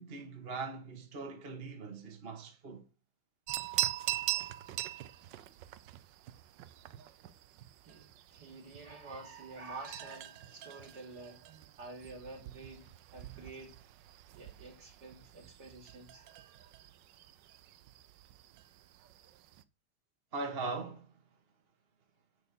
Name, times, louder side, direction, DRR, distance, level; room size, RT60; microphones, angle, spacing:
voice 1, 0.0-2.8 20.3-21.1, right 3 dB, 35° right, 1.6 m, -40 dB
sound 1, 3.5-19.6, right 14 dB, 80° right, 1.3 m, -42 dB
voice 2, 7.8-11.4 11.8-13.8 14.4-16.5, right 3 dB, 65° right, 3.8 m, -49 dB
9.7 x 4.4 x 6.8 m
omnidirectional pair, 1.9 m